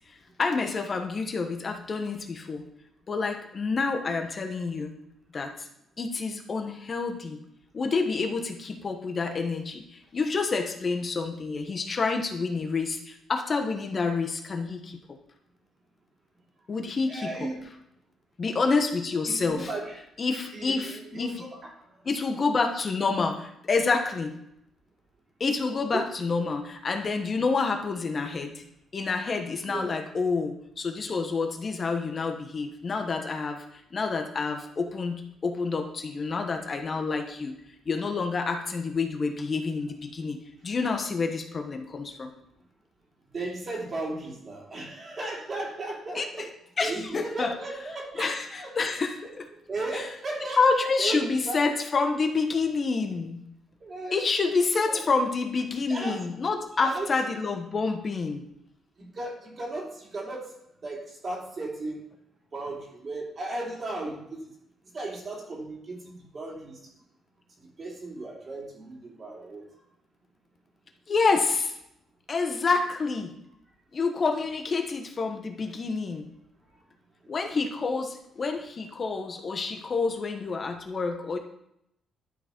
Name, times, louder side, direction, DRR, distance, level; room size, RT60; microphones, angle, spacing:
voice 1, 0.4-2.6 3.1-4.9 5.3-5.7 6.0-7.4 7.7-15.0 16.7-17.5 18.4-19.7 20.2-21.4 22.0-24.3 25.4-28.6 28.9-37.6 37.8-42.3 46.1-46.5 46.8-47.5 48.2-49.5 49.9-50.1 50.4-53.4 54.1-58.4 71.1-71.8 72.3-73.4 73.9-76.2 77.3-81.4, left 4 dB, 40° left, 4 dB, 1.2 m, -28 dB
voice 2, 17.1-17.6 19.3-20.0 20.5-21.5 21.9-22.0 25.9-26.0 29.6-29.9 43.3-46.5 46.8-48.7 49.7-51.6 53.8-54.2 54.9-55.0 55.8-56.2 56.8-57.1 59.0-60.5 60.8-62.0 62.5-64.5 64.9-66.8 67.6-69.6, right 2 dB, 40° right, -2 dB, 2.9 m, -36 dB
12.0 x 4.0 x 4.4 m, 0.78 s
cardioid pair, 90°, 0 cm